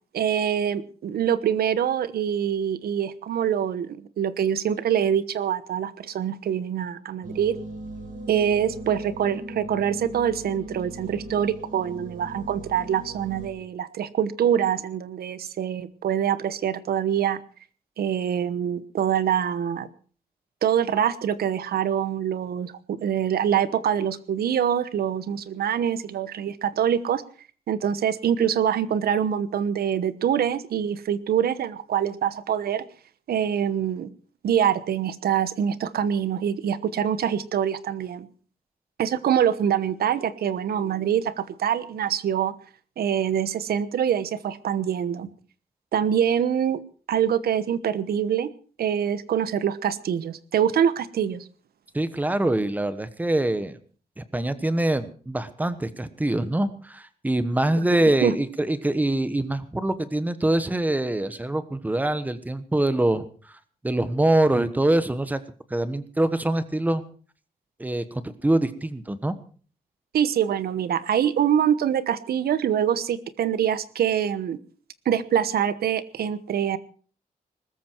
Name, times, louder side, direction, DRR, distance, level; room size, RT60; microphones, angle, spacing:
voice 1, 0.1-7.6 8.3-17.4 18.0-19.9 20.6-27.2 27.7-32.9 33.3-34.1 34.4-38.3 39.0-42.5 43.0-45.3 45.9-46.8 47.1-48.5 48.8-51.5 58.2-58.4 70.1-74.6 75.0-76.8, right 9 dB, 90° right, 15 dB, 1.1 m, -25 dB
sound 1, 7.2-13.5, right 1 dB, 65° right, 4.5 m, -39 dB
voice 2, 51.9-53.8 54.2-63.3 63.8-65.4 65.7-67.0 67.8-69.4, right 1 dB, 10° right, 13 dB, 1.1 m, -24 dB
20.5 x 13.5 x 4.6 m, 0.42 s
wide cardioid pair, 170°, 15 cm